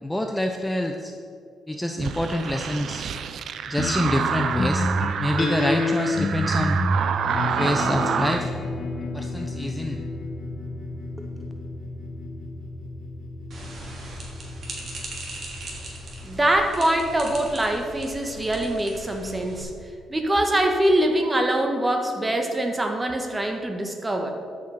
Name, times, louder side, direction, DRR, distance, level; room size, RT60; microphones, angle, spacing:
voice 1, 0.0-1.1 1.7-3.0 3.7-4.9 5.2-6.8 7.5-8.5 9.1-10.0, left 1 dB, 5° left, 4 dB, 0.7 m, -26 dB
sound 1, 2.0-8.4, right 7 dB, 65° right, 0.6 m, -28 dB
sound 2, 3.8-18.5, left 1 dB, 60° left, 1.7 m, -30 dB
sound 3, 13.5-19.6, right 1 dB, 50° right, 3.1 m, -39 dB
voice 2, 16.2-19.7 20.1-24.3, right 1 dB, 20° right, 4 dB, 1.6 m, -23 dB
13.5 x 6.4 x 5.7 m, 2.4 s
cardioid pair, 90°, 0 cm